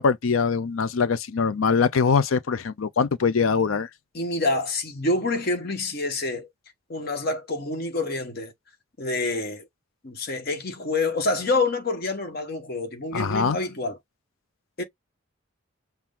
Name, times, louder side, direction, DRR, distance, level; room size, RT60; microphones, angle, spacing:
voice 1, 0.0-3.9 13.1-13.6, left 5 dB, 80° left, 0.5 m, -22 dB
voice 2, 4.1-6.5 6.9-8.5 9.0-9.7 10.0-14.0 14.8-14.9, left 2 dB, 50° left, 1.1 m, -27 dB
6.0 x 2.2 x 3.6 m
head